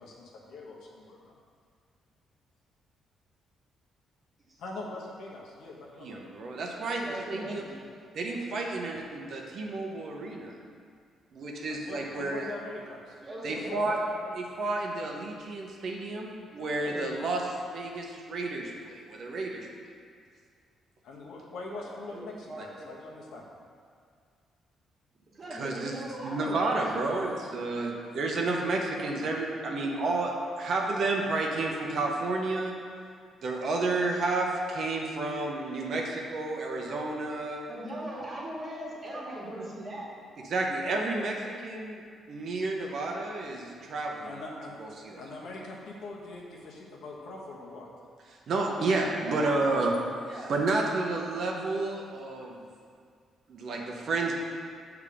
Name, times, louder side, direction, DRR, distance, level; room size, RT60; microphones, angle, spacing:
voice 1, 0.0-1.3 4.6-6.3 11.7-13.2 13.5-14.3 21.0-23.5 44.2-44.9 45.2-47.9, left 2 dB, 75° left, -2 dB, 1.1 m, -43 dB
voice 2, 6.0-7.7 8.1-10.5 11.3-12.5 13.4-14.0 14.3-19.7 22.6-22.7 25.5-32.7 33.4-37.6 40.5-42.0 42.3-44.4 44.8-45.2 48.5-50.0 50.5-52.6 53.5-54.3, right 2 dB, 60° right, 0 dB, 0.9 m, -31 dB
voice 3, 7.0-7.7 13.2-13.9 16.7-17.1 21.7-23.0 25.3-26.8 27.5-27.6 37.7-40.1 49.2-49.8 50.3-50.5, right 1 dB, 35° right, -5 dB, 1.7 m, -40 dB
6.8 x 3.6 x 5.0 m, 2.1 s
cardioid pair, 90°, 0 cm